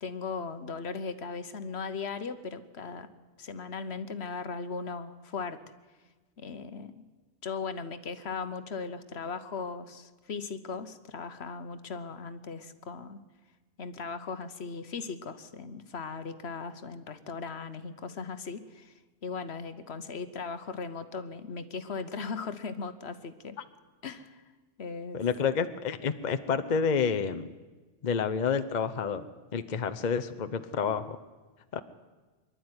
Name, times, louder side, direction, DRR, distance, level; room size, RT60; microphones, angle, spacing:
voice 1, 0.0-3.1 3.4-5.6 6.4-7.0 7.4-13.2 13.8-23.6 24.0-24.4 24.8-25.2, left 5 dB, 65° left, 11 dB, 1.3 m, -38 dB
voice 2, 25.1-27.5 28.0-29.3 29.5-31.2 31.7-31.8, left 6 dB, 45° left, 11 dB, 0.8 m, -29 dB
23.5 x 12.0 x 9.6 m, 1.3 s
omnidirectional pair, 1.2 m